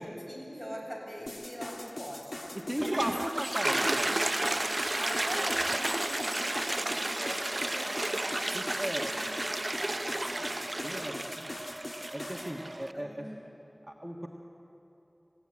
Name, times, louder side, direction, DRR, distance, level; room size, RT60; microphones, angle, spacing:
voice 1, 0.0-2.5 2.8-3.4 5.0-10.7 12.4-13.5, equal, 15° left, -2 dB, 7.8 m, -43 dB
sound 1, 1.3-12.6, left 1 dB, 70° left, 1.8 m, -42 dB
Toilet flush, 2.6-12.9, right 1 dB, 50° right, 0.6 m, -32 dB
voice 2, 2.7-4.2 8.5-9.1 10.8-11.6 12.0-13.3 13.9-14.3, equal, 15° right, 0 dB, 1.7 m, -37 dB
sound 2, 3.1-7.1, left 1 dB, 50° left, 2.5 m, -50 dB
27.5 x 16.5 x 10.0 m, 3.0 s
wide cardioid pair, 45°, 0 cm